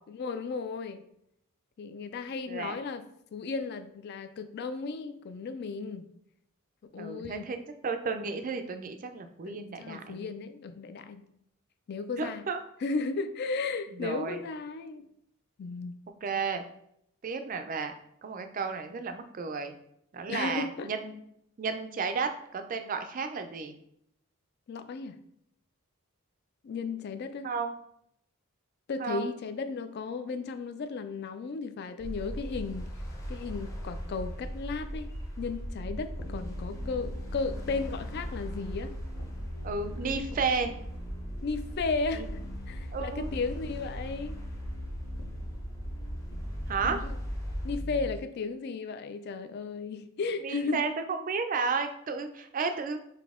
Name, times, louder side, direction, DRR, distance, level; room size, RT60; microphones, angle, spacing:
voice 1, 0.1-1.0 1.8-3.0 3.3-6.1 6.9-7.5 9.5-11.2 11.9-12.4 12.8-15.1 15.6-16.0 20.3-20.9 24.7-25.2 26.6-27.5 28.9-32.9 33.3-35.1 35.4-38.9 40.0-40.3 41.4-44.4 46.8-47.1 47.6-50.9, left 4 dB, 50° left, 10 dB, 0.3 m, -35 dB
voice 2, 7.0-7.6 7.8-10.3 12.2-12.6 14.0-14.4 16.2-16.6 17.2-17.9 18.2-19.7 20.1-21.2 21.6-23.8 27.4-27.8 29.0-29.3 39.6-40.7 42.1-42.3 42.9-43.3 46.7-47.0 50.4-53.0, right 5 dB, 40° right, 7 dB, 0.3 m, -32 dB
sound 1, 32.0-47.8, equal, 15° left, 0.6 m, -39 dB
sound 2, 36.2-48.2, left 1 dB, 70° left, 0.7 m, -42 dB
4.0 x 2.7 x 3.6 m, 0.74 s
head